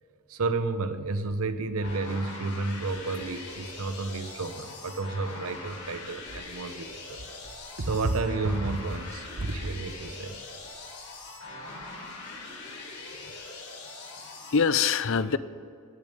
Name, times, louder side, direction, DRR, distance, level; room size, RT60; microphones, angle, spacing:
voice 1, 0.3-7.2 7.8-10.4, right 3 dB, 75° right, 10 dB, 0.9 m, -31 dB
sound 1, 1.8-14.6, left 3 dB, 90° left, 4.1 m, -42 dB
sound 2, 2.7-13.5, right 1 dB, 60° right, 1.2 m, -49 dB
voice 2, 13.1-13.7 14.4-15.4, left 6 dB, 60° left, 15 dB, 0.6 m, -26 dB
18.5 x 7.2 x 6.8 m, 2.4 s
head